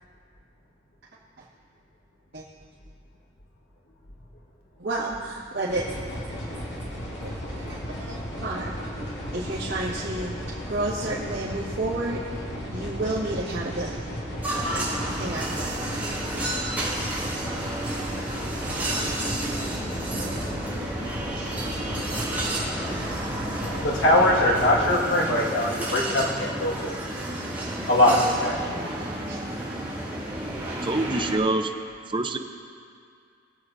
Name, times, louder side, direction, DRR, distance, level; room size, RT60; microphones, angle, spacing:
voice 1, 4.8-5.9 7.5-8.2 8.4-8.8 9.3-10.3 10.7-12.2 12.7-14.1 14.7-15.7 20.1-20.4 21.3-21.7 22.8-22.9 28.1-29.5, right 2 dB, 85° right, -11 dB, 2.0 m, -32 dB
sound 1, 5.7-24.9, equal, 65° left, 2.0 m, -34 dB
sound 2, 14.4-31.4, right 1 dB, 10° right, 2.4 m, -31 dB
voice 2, 23.5-26.9 27.9-28.6, left 1 dB, 90° left, -2 dB, 1.7 m, -22 dB
voice 3, 30.8-31.7 32.1-32.4, right 2 dB, 25° right, 6 dB, 0.6 m, -25 dB
22.5 x 8.0 x 2.7 m, 2.3 s
head